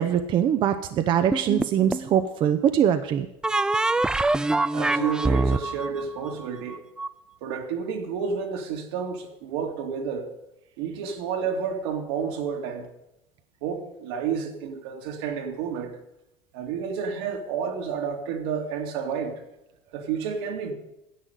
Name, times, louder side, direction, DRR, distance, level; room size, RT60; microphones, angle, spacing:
voice 1, 0.0-3.3, right 9 dB, 40° right, 0.7 m, -22 dB
sound 1, 1.3-2.2 3.4-7.1, right 2 dB, 5° right, 0.3 m, -24 dB
voice 2, 4.7-6.8 7.4-10.3 10.8-12.9 13.6-15.9 16.5-19.3 19.9-20.7, right 6 dB, 80° right, 2.3 m, -30 dB
10.5 x 7.9 x 9.1 m
supercardioid pair, 135°, 13 cm